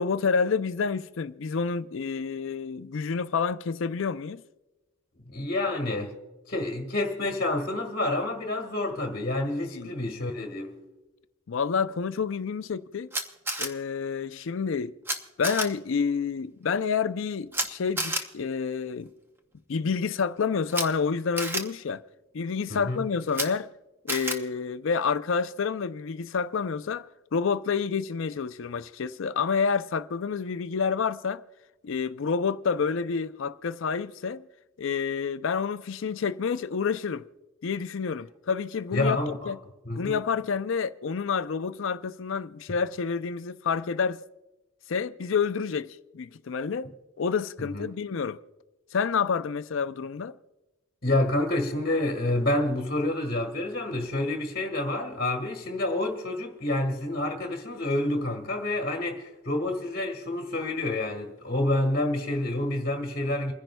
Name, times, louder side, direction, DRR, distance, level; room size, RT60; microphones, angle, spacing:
voice 1, 0.0-4.4 9.7-9.9 11.5-13.1 13.6-14.9 15.4-19.1 19.7-22.0 22.3-23.7 24.0-27.1 27.3-31.4 31.8-34.5 34.8-37.3 37.6-39.6 40.0-44.2 44.9-48.4 48.9-50.4, left 5 dB, 60° left, 0.4 m, -28 dB
voice 2, 5.2-6.1 6.5-10.7 22.7-23.0 38.9-39.5 39.8-40.2 47.6-47.9 51.0-63.5, left 1 dB, 45° left, 1.6 m, -28 dB
Camera, 13.1-13.7 15.0-15.1 15.4-15.6 17.5-17.7 18.0-18.2 20.7-20.8 21.4-21.6 23.3-23.5 24.1-24.4, right 1 dB, 10° right, 0.7 m, -29 dB
29.0 x 10.5 x 2.2 m
head